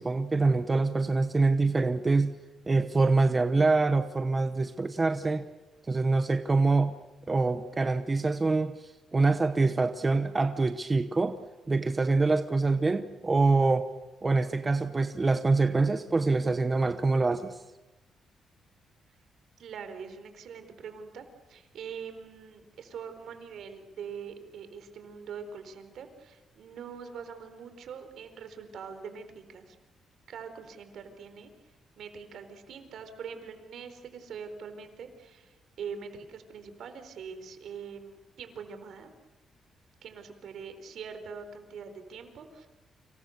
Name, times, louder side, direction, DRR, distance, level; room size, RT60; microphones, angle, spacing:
voice 1, 0.0-2.3 2.7-5.5 5.9-6.9 7.3-11.4 11.7-13.9 14.2-17.6, right 3 dB, 20° right, 9 dB, 1.0 m, -25 dB
voice 2, 19.6-29.8 30.3-31.5 32.0-39.1 40.0-42.7, right 6 dB, 70° right, 8 dB, 4.2 m, -43 dB
30.0 x 26.5 x 6.7 m, 1.0 s
cardioid pair, 140°, 0 cm